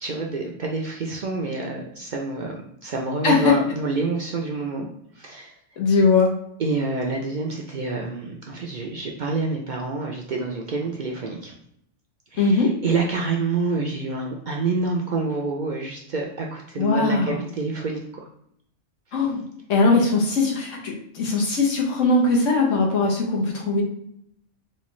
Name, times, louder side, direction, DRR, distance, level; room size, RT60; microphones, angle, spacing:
voice 1, 0.0-4.9 5.1-5.6 6.6-11.5 12.3-18.3 19.2-19.3, right 3 dB, 55° right, 0 dB, 0.5 m, -28 dB
voice 2, 3.2-3.5 5.8-6.3 12.4-12.7 16.8-17.4 19.1-19.4 19.7-23.8, left 3 dB, 90° left, -1 dB, 1.3 m, -20 dB
4.2 x 2.3 x 3.0 m, 0.70 s
omnidirectional pair, 1.3 m